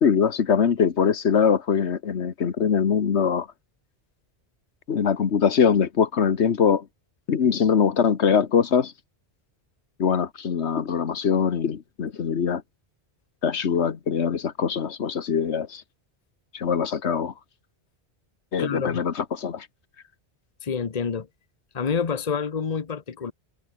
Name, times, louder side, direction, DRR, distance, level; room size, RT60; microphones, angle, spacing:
voice 1, 0.0-3.5 4.9-6.8 7.3-8.9 10.0-12.6 13.4-15.8 16.5-17.3 18.5-19.7, left 7 dB, 85° left, 1.5 m, -22 dB
voice 2, 18.6-19.0 20.6-21.3 21.7-23.3, left 6 dB, 40° left, 1.1 m, -28 dB
omnidirectional pair, 1.1 m